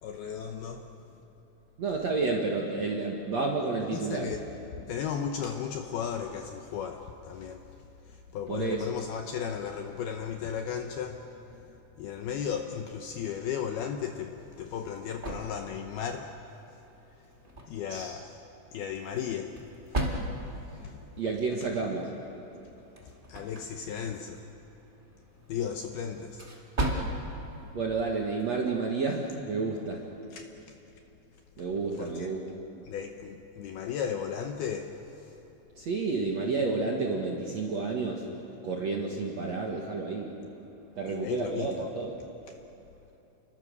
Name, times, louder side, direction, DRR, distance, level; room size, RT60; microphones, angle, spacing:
voice 1, 0.0-0.9 3.9-4.5 4.9-11.7 12.0-16.3 17.7-18.3 18.7-19.6 19.9-20.2 20.8-21.0 21.6-21.7 23.0-24.4 25.5-26.5 30.3-30.8 31.6-31.7 31.9-32.3 32.8-35.4 41.1-41.9, left 8 dB, 75° left, 2.4 m, -35 dB
voice 2, 1.8-4.3 8.5-8.9 17.9-18.2 21.2-22.1 27.7-30.0 31.6-32.4 35.8-38.3 38.6-40.3 41.0-42.1, right 4 dB, 55° right, 1.9 m, -30 dB
sound 1, 14.4-28.8, right 1 dB, 25° right, 1.1 m, -39 dB
29.5 x 22.5 x 6.8 m
omnidirectional pair, 5.4 m